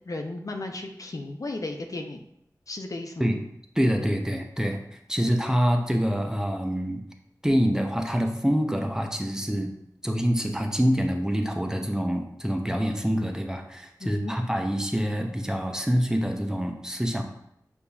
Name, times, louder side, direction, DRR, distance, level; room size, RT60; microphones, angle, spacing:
voice 1, 0.1-2.2 2.7-3.3 14.0-14.3, left 2 dB, 55° left, 4 dB, 0.5 m, -35 dB
voice 2, 3.8-4.8 5.1-7.0 7.4-9.7 10.0-17.2, equal, 10° right, 3 dB, 0.5 m, -26 dB
6.8 x 2.6 x 2.3 m, 0.77 s
wide cardioid pair, 50°, 7 cm